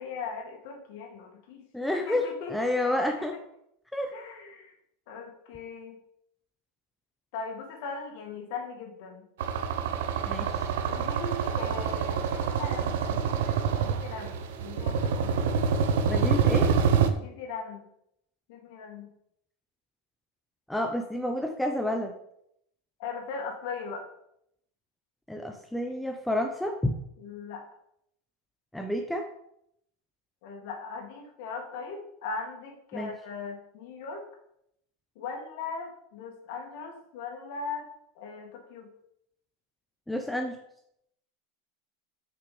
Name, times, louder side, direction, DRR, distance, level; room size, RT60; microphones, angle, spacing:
voice 1, 0.0-1.6 1.9-2.5 3.2-3.3 4.1-4.7 5.1-6.0 7.3-9.3 10.9-15.4 17.2-17.8 18.5-19.1 23.0-24.1 27.2-27.6 30.4-34.2 35.2-37.8 38.2-38.9, left 4 dB, 60° left, 2 dB, 2.1 m, -39 dB
voice 2, 1.7-3.3 3.9-4.1 10.3-10.7 16.1-16.7 20.7-22.1 25.3-26.9 28.7-29.3 32.9-33.1 40.1-40.6, left 1 dB, 5° left, 4 dB, 0.6 m, -29 dB
sound 1, 9.4-17.1, right 6 dB, 85° right, 0.9 m, -26 dB
6.5 x 6.0 x 5.2 m, 0.74 s
supercardioid pair, 155°, 0 cm